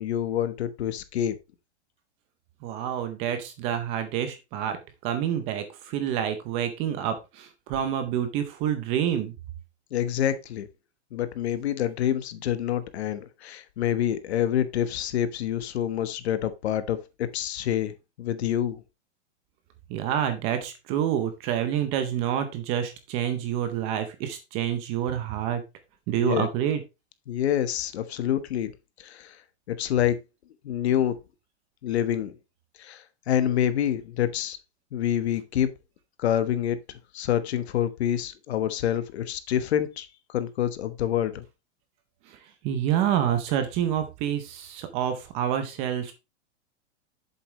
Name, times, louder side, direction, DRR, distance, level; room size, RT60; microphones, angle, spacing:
voice 1, 0.0-1.3 9.9-10.7 11.1-18.8 26.1-26.5 27.3-28.7 29.0-29.4 29.7-30.2 30.6-31.1 31.8-32.4 32.8-34.6 34.9-35.7 36.2-41.4, left 10 dB, 65° left, 1.3 m, -27 dB
voice 2, 2.6-9.3 19.9-25.6 26.1-26.8 42.3-42.4 42.6-46.1, right 10 dB, 15° right, 0.6 m, -28 dB
8.2 x 7.3 x 3.1 m
supercardioid pair, 170°, 35 cm